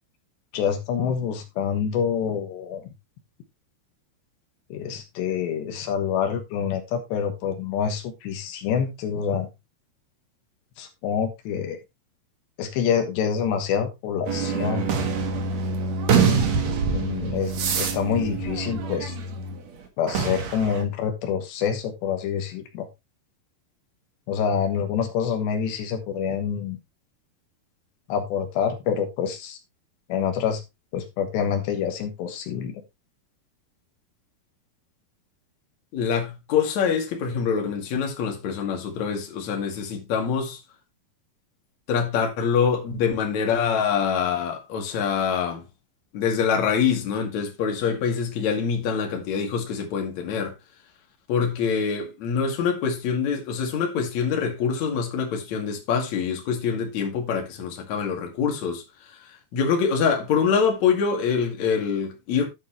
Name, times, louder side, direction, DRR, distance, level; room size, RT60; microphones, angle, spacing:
voice 1, 0.5-2.9 4.7-9.5 10.8-11.8 12.6-14.9 16.2-16.4 16.9-19.1 20.0-22.9 24.3-26.8 28.1-29.6 30.1-30.6 30.9-32.8, left 7 dB, 80° left, 3.5 m, -27 dB
sound 1, 14.3-19.6 20.1-20.8, right 5 dB, 55° right, 2.1 m, -25 dB
voice 2, 35.9-40.6 41.9-45.6 46.1-50.5 51.3-58.8 59.5-62.5, left 6 dB, 50° left, 3.0 m, -25 dB
11.5 x 8.3 x 3.0 m
omnidirectional pair, 5.0 m